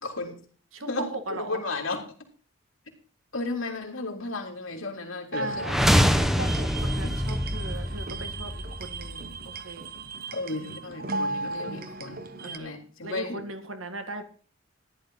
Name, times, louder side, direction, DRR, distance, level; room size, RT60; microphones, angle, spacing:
voice 1, 0.0-0.3 0.9-2.0 3.3-6.2 7.0-7.1 10.3-13.4, left 2 dB, 80° left, 0 dB, 3.3 m, -34 dB
voice 2, 0.7-1.6 5.4-5.6 6.1-9.9 12.4-12.7 13.0-14.2, right 2 dB, 75° right, 7 dB, 2.0 m, -38 dB
sound 1, 5.3-12.6, right 2 dB, 45° right, 1.0 m, -36 dB
sound 2, 5.6-9.6, equal, ahead, 0.8 m, -25 dB
14.5 x 11.0 x 3.9 m, 0.41 s
head